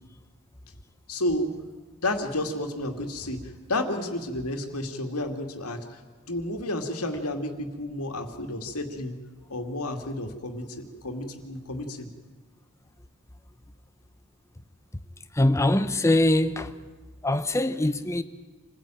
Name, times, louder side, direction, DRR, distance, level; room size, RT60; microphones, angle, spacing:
voice 1, 1.1-1.5 1.9-6.0 6.3-9.2 9.5-12.1, left 1 dB, 85° left, 2.3 m, -31 dB
voice 2, 15.3-16.7 17.2-18.2, left 1 dB, 15° left, 0.8 m, -22 dB
26.5 x 15.5 x 9.1 m
head